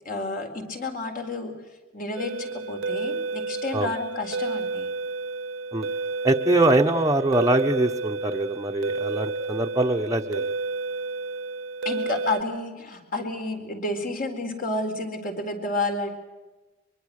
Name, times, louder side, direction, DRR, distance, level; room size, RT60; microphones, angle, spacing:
voice 1, 0.0-1.5 1.9-4.9 11.8-16.1, left 2 dB, 45° left, 4 dB, 4.1 m, -30 dB
sound 1, 2.2-12.4, right 3 dB, 90° right, 0.7 m, -31 dB
voice 2, 6.2-10.5, right 2 dB, 15° right, 2 dB, 1.0 m, -23 dB
24.0 x 23.5 x 6.6 m, 1.2 s
head